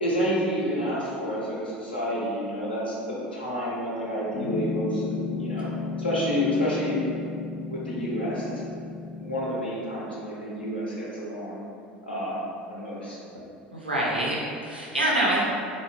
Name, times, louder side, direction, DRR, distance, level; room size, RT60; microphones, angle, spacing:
voice 1, 0.0-5.7 6.0-7.0 7.6-8.5 9.2-11.7 12.0-12.4 12.7-13.2, equal, 85° left, -6 dB, 0.5 m, -29 dB
Piano, 4.3-9.4, left 4 dB, ahead, 0.4 m, -33 dB
voice 2, 13.7-15.4, right 1 dB, 90° right, -5 dB, 0.4 m, -25 dB
2.6 x 2.1 x 2.3 m, 2.4 s
figure-of-eight pair, 70°, 5 cm